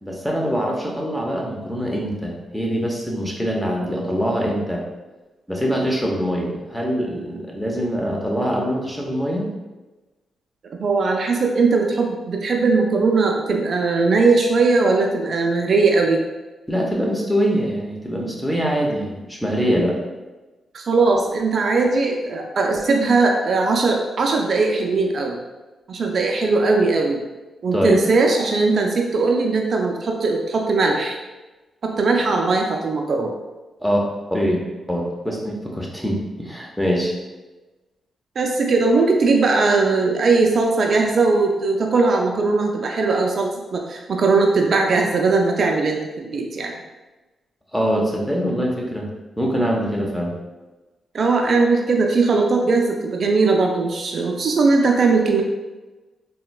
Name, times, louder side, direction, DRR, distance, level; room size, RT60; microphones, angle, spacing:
voice 1, 0.0-4.8 5.5-9.5 16.7-19.9 27.7-28.0 33.8-34.0 34.3-34.6 34.9-37.1 47.7-49.1 49.4-50.4, equal, 5° left, -2 dB, 0.8 m, -23 dB
voice 2, 10.8-16.2 20.7-25.4 25.9-27.2 27.6-31.2 31.8-33.3 38.4-46.7 51.1-55.4, right 3 dB, 60° right, 2 dB, 0.3 m, -19 dB
3.7 x 2.1 x 2.2 m, 1.2 s
supercardioid pair, 55°, 0 cm